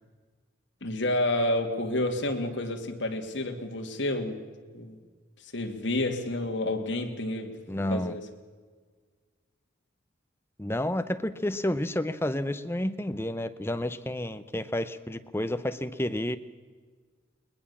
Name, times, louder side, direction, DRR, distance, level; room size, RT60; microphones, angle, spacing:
voice 1, 0.8-4.4 4.7-5.0 5.4-7.6 7.8-8.2, left 1 dB, 65° left, 3 dB, 2.7 m, -29 dB
voice 2, 7.7-8.2 10.6-16.4, left 1 dB, 10° left, 11 dB, 0.7 m, -30 dB
21.0 x 21.0 x 7.2 m, 1.5 s
head